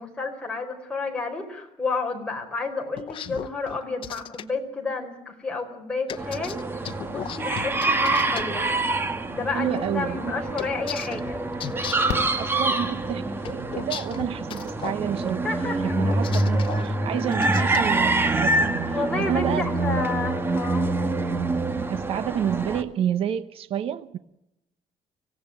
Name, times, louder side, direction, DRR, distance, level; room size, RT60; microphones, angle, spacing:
voice 1, 0.0-8.7 9.3-11.4 15.4-16.0 16.5-16.6 18.9-20.9, left 4 dB, 10° left, 1 dB, 4.8 m, -31 dB
sound 1, 3.0-4.4 6.1-8.4 10.6-12.2 13.4-15.0 16.0-16.9 17.3-17.9, left 9 dB, 50° left, 1.2 m, -36 dB
sound 2, 6.2-22.8, right 2 dB, 20° right, 1.7 m, -26 dB
voice 2, 9.5-10.3 12.4-15.4 15.8-19.6 21.7-24.2, right 9 dB, 60° right, 14 dB, 1.0 m, -29 dB
Fireworks, 10.4-10.5 12.1-13.4 15.2-15.3 15.5-15.6, left 9 dB, 80° left, 1.6 m, -35 dB
25.0 x 17.0 x 9.2 m, 0.85 s
cardioid pair, 150°, 11 cm